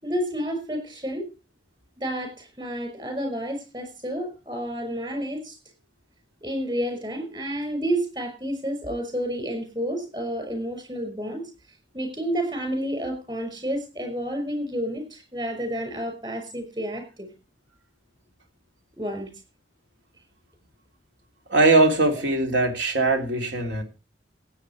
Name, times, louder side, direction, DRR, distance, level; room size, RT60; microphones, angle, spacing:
voice 1, 0.0-1.3 2.0-5.6 6.4-11.4 11.9-17.3 19.0-19.3, equal, 25° right, 6 dB, 5.9 m, -30 dB
voice 2, 21.5-23.8, right 2 dB, 75° right, 4 dB, 3.1 m, -20 dB
16.0 x 9.0 x 4.7 m, 0.31 s
head